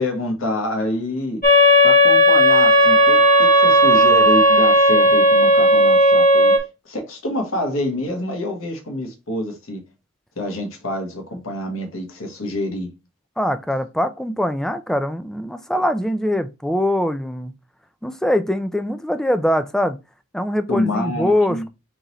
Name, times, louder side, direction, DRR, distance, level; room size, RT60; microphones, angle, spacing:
voice 1, 0.0-1.4 1.8-6.5 6.8-9.8 10.4-12.9 20.7-21.6, left 1 dB, 75° left, 1.2 m, -26 dB
sound 1, 1.4-6.6, equal, 40° left, 1.3 m, -13 dB
voice 2, 13.4-17.5 18.0-20.0 20.3-21.7, left 1 dB, ahead, 0.3 m, -22 dB
3.8 x 3.0 x 3.9 m
head